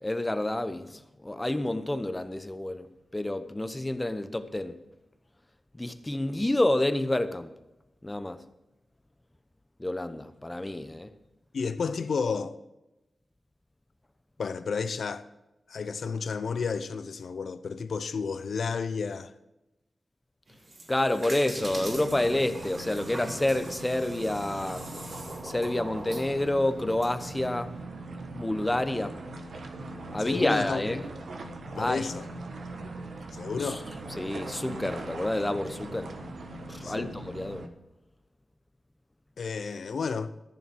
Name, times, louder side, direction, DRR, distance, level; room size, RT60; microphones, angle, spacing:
voice 1, 0.0-2.9 3.1-4.8 5.8-7.5 8.0-8.4 9.8-11.1 20.9-24.8 25.4-27.7 28.3-29.2 30.1-31.0 31.7-32.1 33.6-33.8 34.2-36.1 36.7-37.6, left 1 dB, 15° left, 0.9 m, -29 dB
voice 2, 11.5-12.6 14.4-15.2 15.7-19.3 30.2-30.8 31.8-32.3 33.3-33.9 36.8-37.1 39.4-40.3, left 5 dB, 75° left, 0.7 m, -31 dB
sound 1, 20.5-27.1, right 2 dB, 45° right, 2.8 m, -43 dB
sound 2, 21.6-37.7, right 2 dB, 80° right, 1.5 m, -41 dB
14.0 x 7.1 x 6.0 m
wide cardioid pair, 105°, 0 cm